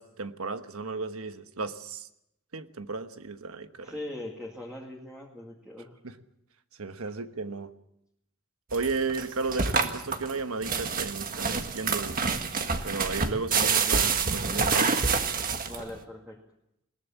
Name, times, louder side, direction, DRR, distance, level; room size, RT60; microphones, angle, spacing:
voice 1, 0.0-2.1 2.5-3.9 6.0-6.1 6.8-7.7 8.7-12.3 12.8-15.0, right 4 dB, 85° right, 10 dB, 1.2 m, -34 dB
voice 2, 3.8-6.0 15.7-16.4, left 1 dB, 5° right, -2 dB, 2.2 m, -40 dB
sound 1, 8.7-16.0, right 5 dB, 40° right, 1.5 m, -27 dB
21.0 x 18.5 x 7.2 m, 0.82 s
head